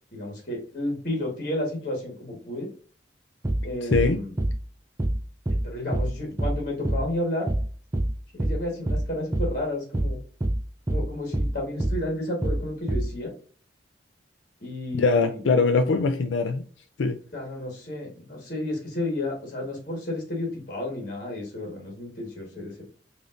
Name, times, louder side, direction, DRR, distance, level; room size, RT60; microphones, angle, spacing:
voice 1, 0.1-2.7 3.6-4.3 5.6-7.5 8.3-10.2 10.9-13.3 14.6-15.4 17.3-22.8, left 1 dB, 45° left, 1.4 m, -32 dB
sound 1, 3.4-3.7 3.9-4.1 4.4-4.6 5.0-5.2 5.5-5.7 5.9-6.1 6.4-6.6 6.8-7.1 7.5-7.7 7.9-8.1 8.4-8.6 8.9-9.1 9.3-9.5 9.9-10.1 10.4-10.6 10.9-11.1 11.3-11.5 11.8-12.0 12.4-12.6 12.9-13.1, right 1 dB, 15° right, 0.4 m, -25 dB
voice 2, 3.8-4.2 15.0-16.6 17.0-17.2, left 4 dB, 85° left, 0.4 m, -22 dB
5.0 x 2.7 x 2.4 m
head